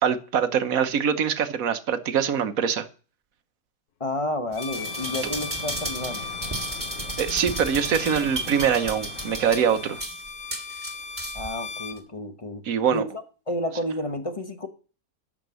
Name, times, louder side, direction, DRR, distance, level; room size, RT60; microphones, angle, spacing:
voice 1, 0.0-2.9 7.2-10.0 12.7-13.0, right 7 dB, 65° right, 10 dB, 1.4 m, -23 dB
voice 2, 4.0-6.3 11.3-12.6 12.9-14.7, left 1 dB, 25° left, 7 dB, 0.9 m, -31 dB
Bowed string instrument, 4.5-12.0, left 5 dB, 75° left, 1.4 m, -37 dB
sound 1, 4.5-11.5 12.0-12.1, right 2 dB, 10° right, 1.8 m, -34 dB
sound 2, 4.7-10.0, left 1 dB, 50° left, 3.4 m, -41 dB
12.5 x 5.3 x 6.9 m, 0.38 s
omnidirectional pair, 1.6 m